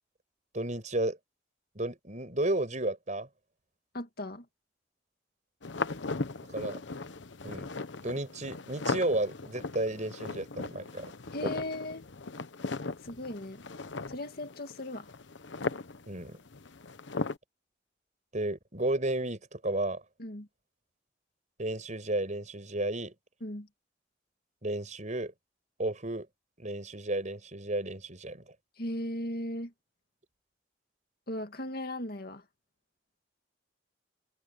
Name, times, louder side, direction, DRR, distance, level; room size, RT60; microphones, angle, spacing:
voice 1, 0.5-1.2 1.7-3.3 6.5-6.8 7.4-7.7 8.0-11.1 11.4-11.5 16.1-16.4 18.3-20.0 21.6-23.1 24.6-25.3 25.8-26.3 26.6-28.4, right 2 dB, 40° right, 6.2 m, -32 dB
voice 2, 3.9-4.5 11.3-12.1 13.0-13.6 14.1-15.1 20.2-20.5 23.4-23.7 28.8-29.7 31.3-32.4, left 1 dB, 55° left, 2.2 m, -37 dB
sound 1, 5.6-17.4, left 3 dB, 85° left, 1.0 m, -38 dB
head